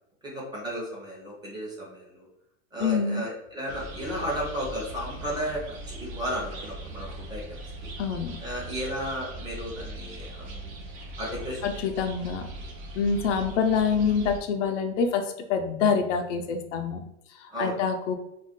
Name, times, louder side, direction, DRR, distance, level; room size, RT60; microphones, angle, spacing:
voice 1, 0.2-2.3 2.7-7.9 8.4-10.7 11.2-11.7 17.5-17.8, equal, 10° right, -4 dB, 0.6 m, -34 dB
voice 2, 2.8-3.2 8.0-8.4 11.6-12.5 13.0-15.2 15.5-17.0 17.4-18.1, left 6 dB, 85° left, 6 dB, 0.6 m, -26 dB
sound 1, 3.7-14.4, right 1 dB, 50° right, 0.7 m, -40 dB
2.5 x 2.2 x 3.6 m, 0.85 s
supercardioid pair, 150°, 36 cm